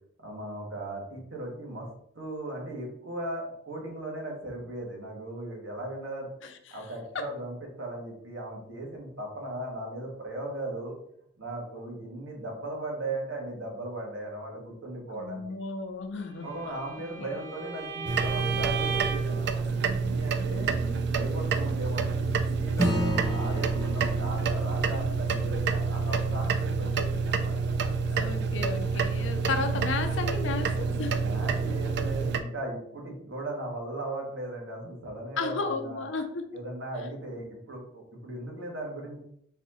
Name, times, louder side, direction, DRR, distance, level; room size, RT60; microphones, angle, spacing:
voice 1, 0.2-1.9 2.1-6.3 6.7-11.0 11.4-15.4 16.4-20.7 21.1-27.5 31.2-36.0 36.5-39.2, right 1 dB, 80° right, -1 dB, 1.4 m, -37 dB
voice 2, 6.4-6.8 7.1-7.2 15.1-16.6 17.2-17.5 28.0-31.2 35.4-36.5, left 4 dB, 70° left, 6 dB, 0.5 m, -33 dB
Bowed string instrument, 16.4-19.4, right 6 dB, 40° right, 1.2 m, -35 dB
sound 1, 18.1-32.4, right 4 dB, 60° right, 0.4 m, -28 dB
Acoustic guitar / Strum, 22.8-27.6, left 1 dB, 15° left, 0.7 m, -34 dB
4.1 x 2.7 x 4.1 m, 0.71 s
head